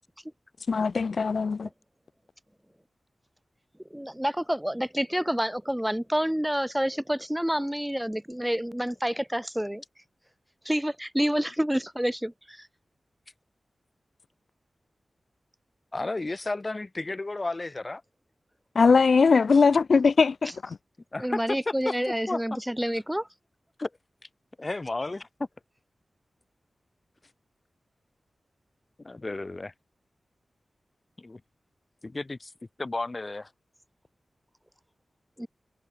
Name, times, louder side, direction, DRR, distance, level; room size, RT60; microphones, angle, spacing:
voice 1, 0.7-1.7 18.8-20.8, left 5 dB, 70° left, 2.2 m, -21 dB
voice 2, 3.9-9.8 10.6-12.7 21.2-23.3 35.4-35.5, equal, 5° right, 2.5 m, -28 dB
voice 3, 15.9-18.0 21.1-21.4 21.9-22.0 22.3-22.4 23.8-23.9 24.6-25.3 29.0-29.7 31.2-31.4 32.0-32.5 32.8-33.5, left 2 dB, 30° left, 4.0 m, -32 dB
wide cardioid pair, 105°, 0 cm